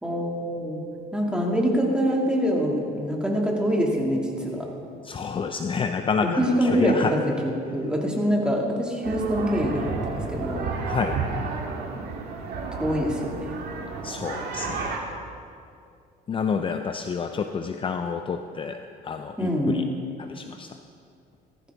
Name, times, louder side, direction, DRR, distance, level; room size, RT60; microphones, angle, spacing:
voice 1, 0.0-0.8 1.1-4.7 6.2-10.7 12.8-13.5 19.4-19.9, equal, 5° right, -2 dB, 2.3 m, -25 dB
voice 2, 5.0-7.1 10.8-11.2 14.0-15.1 16.3-19.8 20.2-20.8, left 5 dB, 30° left, 7 dB, 0.6 m, -29 dB
sound 1, 9.0-15.0, right 4 dB, 70° right, 1.8 m, -32 dB
16.0 x 14.0 x 3.6 m, 2.4 s
cardioid pair, 110°, 17 cm